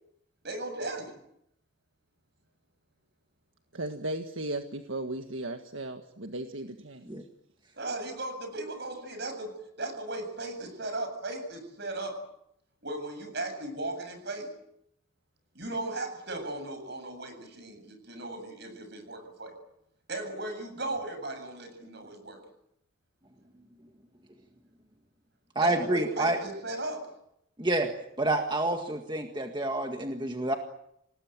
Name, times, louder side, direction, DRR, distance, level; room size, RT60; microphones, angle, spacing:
voice 1, 0.4-1.1 7.7-9.5 9.8-12.2 12.8-14.5 15.5-19.5 20.1-22.4 25.6-27.0, right 2 dB, 50° right, 7 dB, 7.8 m, -36 dB
voice 2, 3.7-7.1, right 2 dB, 70° right, 6 dB, 1.7 m, -36 dB
voice 3, 25.6-26.4 27.6-27.9 28.2-30.5, right 2 dB, 20° right, 4 dB, 1.8 m, -28 dB
28.0 x 19.5 x 9.0 m, 0.77 s
head